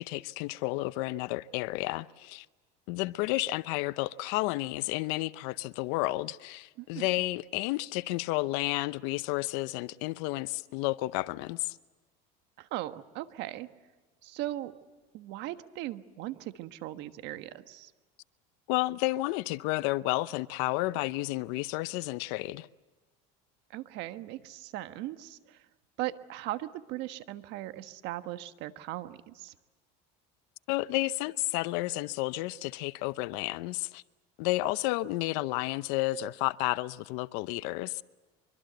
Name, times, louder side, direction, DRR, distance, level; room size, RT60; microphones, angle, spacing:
voice 1, 0.0-2.5 2.9-11.8 18.7-22.7 30.7-34.0 34.4-38.0, left 19 dB, 70° left, 0.7 m, -31 dB
voice 2, 12.6-13.7 14.2-14.7 15.1-17.9 23.7-25.6 26.0-29.5, right 15 dB, 65° right, 1.4 m, -38 dB
24.5 x 24.0 x 8.0 m
supercardioid pair, 115°, 20 cm